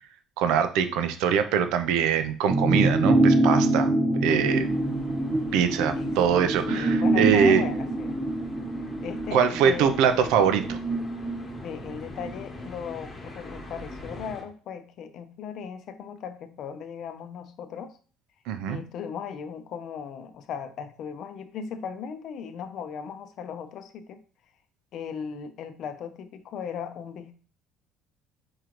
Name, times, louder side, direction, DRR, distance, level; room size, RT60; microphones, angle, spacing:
voice 1, 0.4-3.9 4.2-4.7 5.5-7.6 9.3-10.8 18.5-18.8, right 7 dB, 80° right, 9 dB, 0.6 m, -23 dB
sound 1, 2.5-12.3 12.7-12.8, right 1 dB, 20° right, 0.6 m, -25 dB
sound 2, 4.5-14.4, left 2 dB, 20° left, 1.1 m, -42 dB
voice 2, 6.0-6.4 6.7-8.2 9.0-9.9 11.6-18.0 18.7-24.2 24.9-27.3, left 7 dB, 55° left, 10 dB, 0.6 m, -37 dB
4.7 x 3.8 x 3.0 m, 0.39 s
cardioid pair, 145°, 0 cm